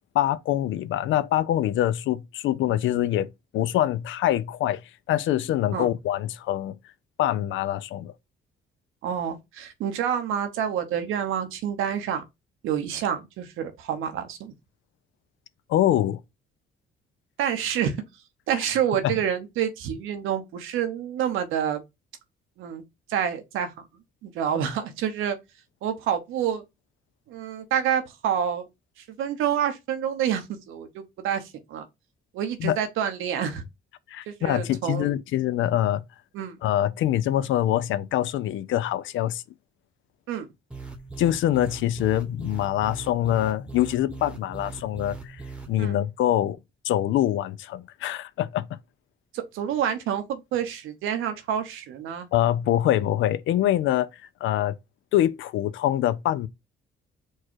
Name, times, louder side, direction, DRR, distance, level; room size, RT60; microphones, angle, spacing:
voice 1, 0.1-3.3 3.5-4.8 5.1-6.8 7.2-8.1 15.7-16.2 19.0-19.1 32.6-32.8 34.1-36.0 36.6-39.4 41.2-45.4 45.7-46.6 46.8-48.8 52.3-54.1 54.4-54.8 55.1-56.5, left 12 dB, 75° left, 0.4 m, -24 dB
voice 2, 9.0-12.2 12.6-14.5 17.4-18.0 18.5-21.8 22.6-22.8 23.1-23.7 24.2-25.4 25.8-26.6 27.3-28.7 29.0-31.9 32.3-33.6 34.3-35.1 36.3-36.6 40.3-40.5 45.8-46.0 49.3-52.3, right 9 dB, 90° right, 0.9 m, -28 dB
sound 1, 40.7-45.9, right 3 dB, 5° right, 0.9 m, -40 dB
4.5 x 2.4 x 4.5 m
cardioid pair, 90°, 20 cm